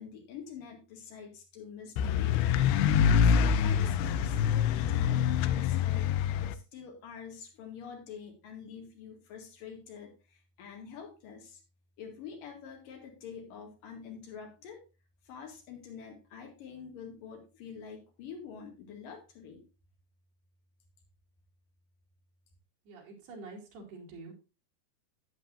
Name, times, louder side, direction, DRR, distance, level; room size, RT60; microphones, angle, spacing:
voice 1, 0.0-2.5 3.0-6.1 6.4-11.6 12.0-14.8 15.3-19.6, left 6 dB, 65° left, 2 dB, 3.6 m, -46 dB
sound 1, 2.0-6.5, left 7 dB, 90° left, 2.7 m, -25 dB
voice 2, 22.9-24.3, right 3 dB, 90° right, 0 dB, 4.7 m, -47 dB
11.0 x 8.9 x 2.6 m, 0.30 s
omnidirectional pair, 4.4 m